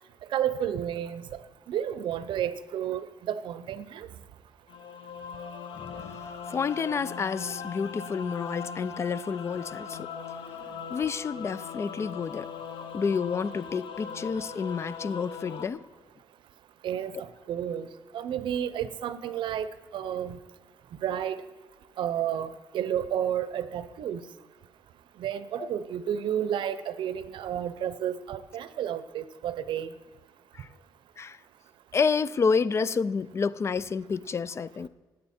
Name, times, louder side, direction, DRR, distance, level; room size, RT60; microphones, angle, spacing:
voice 1, 0.3-1.3 1.7-4.1 16.8-17.9 18.1-19.7 19.9-20.4 21.0-21.5 22.0-24.2 25.2-29.9, right 10 dB, 80° right, 0.7 m, -31 dB
sound 1, 4.7-15.7, left 6 dB, 85° left, 1.0 m, -40 dB
voice 2, 5.7-6.2 6.5-10.1 10.6-12.5 12.9-15.8 25.6-25.7 30.5-30.7 31.2-31.4 31.9-34.9, left 5 dB, 35° left, 0.3 m, -29 dB
17.0 x 9.5 x 4.4 m
cardioid pair, 135°, 8 cm